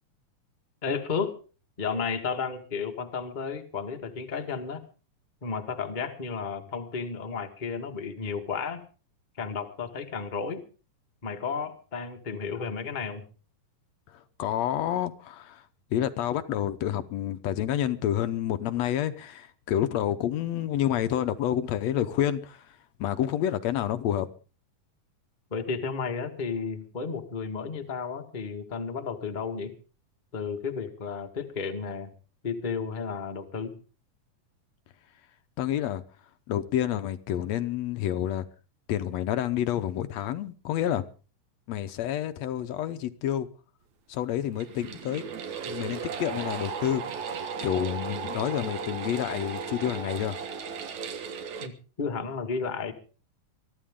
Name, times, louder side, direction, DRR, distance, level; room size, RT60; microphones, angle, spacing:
voice 1, 0.8-1.3 1.8-4.8 5.4-8.8 9.4-10.6 11.2-13.2 25.5-29.7 30.3-32.1 32.4-33.7 51.6-51.7 52.0-52.9, left 5 dB, 25° left, 1.0 m, -33 dB
voice 2, 14.1-15.7 15.9-24.3 35.6-36.0 36.5-38.5 38.9-41.0 41.7-43.5 44.1-45.2 45.7-47.0 47.6-50.4, left 11 dB, 70° left, 1.8 m, -29 dB
sound 1, 44.5-51.7, right 6 dB, 65° right, 2.6 m, -36 dB
23.5 x 13.5 x 3.7 m
omnidirectional pair, 3.7 m